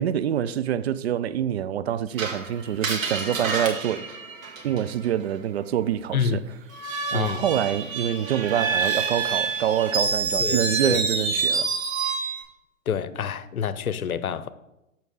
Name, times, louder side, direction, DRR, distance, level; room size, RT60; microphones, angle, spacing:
voice 1, 0.0-4.1 4.6-6.4 7.1-11.7, right 10 dB, 50° right, 0.4 m, -26 dB
Screech, 2.2-5.1 6.7-12.4, right 5 dB, 70° right, 1.8 m, -27 dB
voice 2, 7.1-7.4 10.4-11.0 12.9-14.5, left 7 dB, 85° left, 0.7 m, -27 dB
7.4 x 7.0 x 3.8 m
figure-of-eight pair, 120°, 42 cm